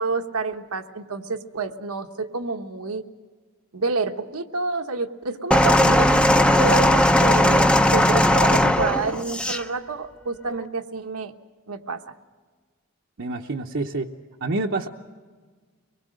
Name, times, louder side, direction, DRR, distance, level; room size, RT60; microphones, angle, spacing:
voice 1, 0.0-3.1 3.7-11.3 11.7-12.0, right 3 dB, 80° right, 6 dB, 1.2 m, -28 dB
sound 1, 5.5-9.6 10.5-10.6, left 1 dB, 5° left, 0.7 m, -18 dB
voice 2, 13.2-14.1 14.4-14.9, right 2 dB, 55° right, 1 dB, 0.9 m, -27 dB
24.0 x 21.0 x 6.4 m, 1.5 s
head